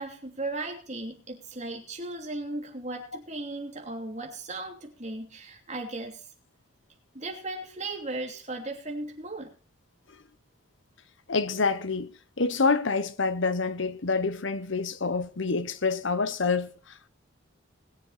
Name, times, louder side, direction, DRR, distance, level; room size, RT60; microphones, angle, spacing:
voice 1, 0.0-6.3 7.1-9.5, right 2 dB, 35° right, 3.0 m, -36 dB
voice 2, 11.3-17.1, left 4 dB, 65° left, 0.9 m, -27 dB
21.0 x 7.6 x 4.3 m
head